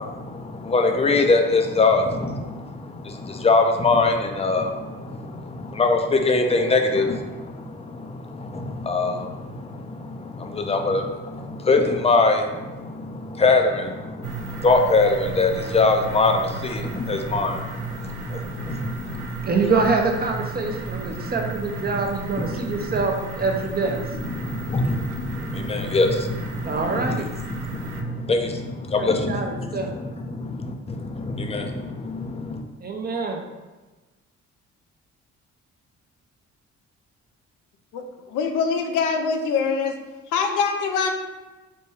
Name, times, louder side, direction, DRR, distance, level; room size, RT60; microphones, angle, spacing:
voice 1, 0.0-19.5 21.0-21.3 22.4-22.9 24.1-32.6, left 3 dB, 20° left, 4 dB, 0.4 m, -24 dB
sound 1, 14.2-28.0, right 3 dB, 75° right, 0.5 m, -34 dB
voice 2, 19.4-24.0 26.6-27.3 29.0-29.9 32.8-33.4, right 4 dB, 30° right, 3 dB, 0.5 m, -25 dB
voice 3, 38.3-40.0 40.3-41.1, left 5 dB, 85° left, 5 dB, 0.5 m, -23 dB
4.2 x 2.2 x 3.2 m, 1.2 s
cardioid pair, 90°, 30 cm